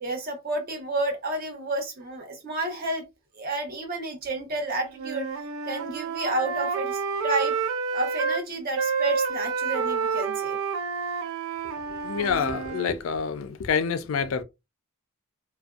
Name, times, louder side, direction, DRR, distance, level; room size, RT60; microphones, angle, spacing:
voice 1, 0.0-3.0 3.3-5.3 5.7-7.5 7.9-10.6, right 2 dB, 45° right, 0.8 m, -30 dB
Wind instrument woodwind instrument, 4.9-8.4 8.7-13.0, right 5 dB, 80° right, 0.4 m, -29 dB
voice 2, 11.9-14.4, left 6 dB, 75° left, 0.4 m, -27 dB
2.5 x 2.1 x 2.3 m
head